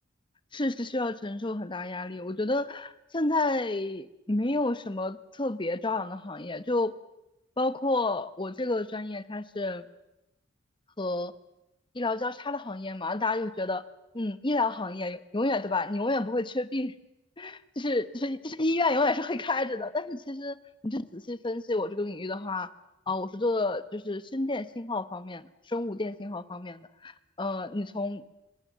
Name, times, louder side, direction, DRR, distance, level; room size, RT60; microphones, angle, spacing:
voice 1, 0.5-6.9 7.6-9.8 11.0-11.3 11.9-13.8 14.1-16.9 17.4-20.6 20.8-22.7 23.1-28.2, left 2 dB, 25° left, 13 dB, 1.1 m, -30 dB
26.5 x 22.5 x 7.5 m, 0.91 s
head